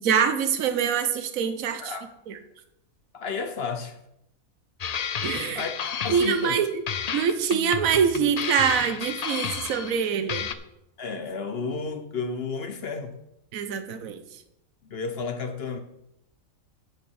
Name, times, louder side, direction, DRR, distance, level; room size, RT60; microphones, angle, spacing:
voice 1, 0.0-1.9 2.3-2.4 5.2-5.6 6.1-6.8 7.1-10.5 13.5-14.4, right 7 dB, 75° right, 9 dB, 1.3 m, -25 dB
voice 2, 3.1-4.0 5.5-5.7 6.0-6.6 11.0-13.2 14.8-15.8, left 4 dB, 50° left, 7 dB, 1.1 m, -32 dB
sound 1, 4.8-6.6 6.9-10.0 10.3-10.5, left 7 dB, 80° left, 0.3 m, -32 dB
10.5 x 5.9 x 6.3 m, 0.82 s
omnidirectional pair, 1.5 m